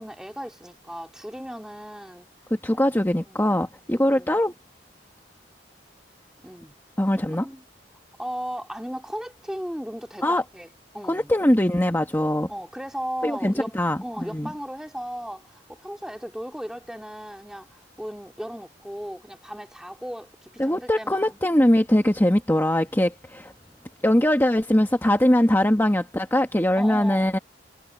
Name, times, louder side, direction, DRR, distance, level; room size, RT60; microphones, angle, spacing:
voice 1, 0.0-2.3 2.7-3.5 3.9-4.4 6.4-6.8 7.3-7.6 8.2-10.7 10.9-11.3 12.5-21.4 26.8-27.3, equal, 5° right, 3.9 m, -36 dB
voice 2, 2.5-4.5 7.0-7.5 10.2-10.4 11.1-12.5 13.2-14.5 20.6-23.5 24.0-27.4, left 1 dB, 10° left, 1.6 m, -21 dB
head